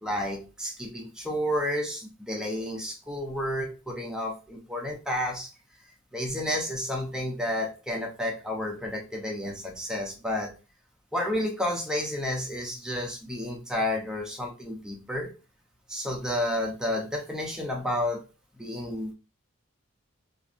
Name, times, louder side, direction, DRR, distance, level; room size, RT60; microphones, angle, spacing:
voice 1, 0.0-5.5 6.1-10.5 11.1-15.3 15.9-18.2 18.6-19.1, left 1 dB, 5° right, 0 dB, 0.6 m, -31 dB
3.1 x 2.5 x 2.5 m, 0.31 s
head